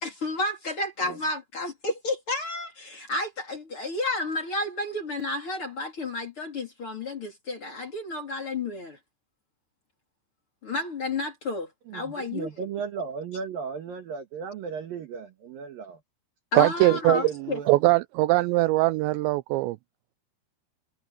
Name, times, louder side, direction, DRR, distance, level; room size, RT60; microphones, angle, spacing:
voice 1, 0.0-9.0 10.6-12.5 16.5-17.6, left 2 dB, 30° left, 3.1 m, -31 dB
voice 2, 11.9-16.0 16.9-17.8, right 6 dB, 60° right, 2.6 m, -35 dB
voice 3, 16.5-17.2 17.7-19.8, right 19 dB, 90° right, 2.5 m, -21 dB
omnidirectional pair, 5.7 m